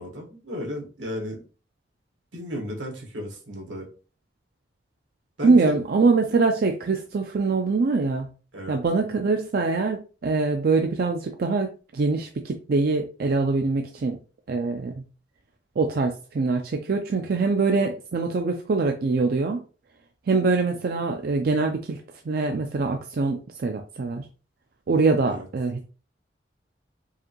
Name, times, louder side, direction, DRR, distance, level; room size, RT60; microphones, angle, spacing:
voice 1, 0.0-1.4 2.3-3.9 5.4-5.8 8.5-8.8 25.2-25.5, equal, 85° right, 0 dB, 1.5 m, -34 dB
voice 2, 5.4-8.3 8.7-14.2 14.5-15.0 15.8-19.6 20.3-22.0 22.3-24.2 24.9-25.8, right 3 dB, 55° right, 4 dB, 0.4 m, -23 dB
4.7 x 2.6 x 3.0 m, 0.36 s
head